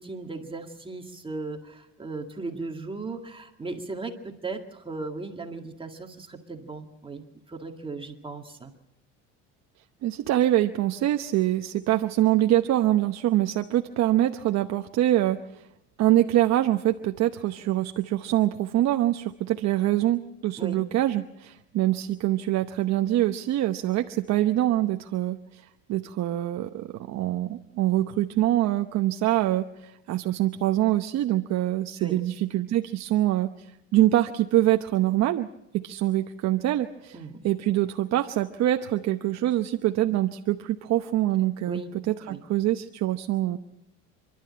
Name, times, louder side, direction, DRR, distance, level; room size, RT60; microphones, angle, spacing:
voice 1, 0.0-8.7 20.6-20.8 32.0-32.2 37.1-37.4 41.7-42.0 42.3-42.4, right 3 dB, 15° right, 3 dB, 2.0 m, -37 dB
voice 2, 10.0-15.7 16.0-35.5 35.7-43.6, right 14 dB, 50° right, 6 dB, 0.9 m, -24 dB
28.0 x 12.5 x 8.7 m, 0.89 s
cardioid pair, 125°, 33 cm